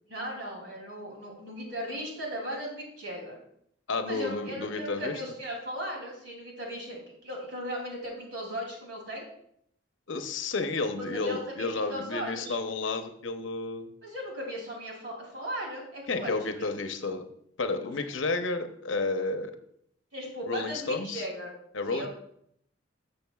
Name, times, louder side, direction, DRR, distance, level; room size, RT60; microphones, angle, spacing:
voice 1, 0.1-3.4 4.1-9.3 11.0-12.6 14.0-16.7 17.8-17.9 20.1-21.5 21.9-22.1, equal, 60° right, -1 dB, 2.9 m, -37 dB
voice 2, 3.9-5.1 10.1-13.9 16.1-17.2 17.6-19.5 20.5-21.2 21.7-22.1, left 3 dB, 75° left, 7 dB, 0.8 m, -31 dB
12.5 x 6.8 x 2.3 m, 0.71 s
head